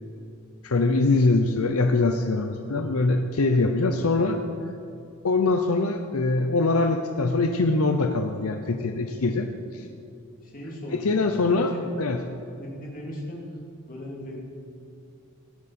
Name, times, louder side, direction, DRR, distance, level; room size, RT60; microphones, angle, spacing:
voice 1, 0.6-4.4 5.2-9.9 10.9-11.7 12.0-12.2, left 3 dB, 75° left, 5 dB, 0.7 m, -23 dB
voice 2, 10.4-11.2 11.5-11.9 12.6-13.4 13.9-14.4, left 1 dB, 40° left, -3 dB, 2.9 m, -38 dB
17.0 x 11.0 x 4.4 m, 2.5 s
head